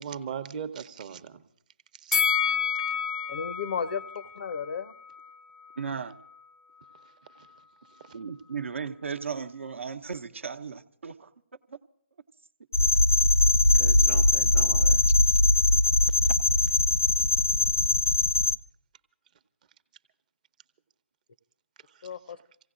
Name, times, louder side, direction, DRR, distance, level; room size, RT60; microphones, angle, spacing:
voice 1, 0.0-1.4 1.9-2.2 6.9-8.2 13.7-15.0 16.1-16.3 21.8-22.3, right 7 dB, 35° right, 0.8 m, -41 dB
Bell, 2.1-5.3 5.7-5.8, left 7 dB, 5° left, 0.6 m, -29 dB
voice 2, 3.3-4.9 14.7-14.8 22.0-22.4, left 6 dB, 45° left, 0.5 m, -34 dB
voice 3, 5.8-6.2 8.1-11.3 11.7-11.8, right 6 dB, 65° right, 0.9 m, -36 dB
sound 1, 12.7-18.6, left 1 dB, 90° left, 0.8 m, -21 dB
28.0 x 16.5 x 2.5 m
figure-of-eight pair, 145°, 7 cm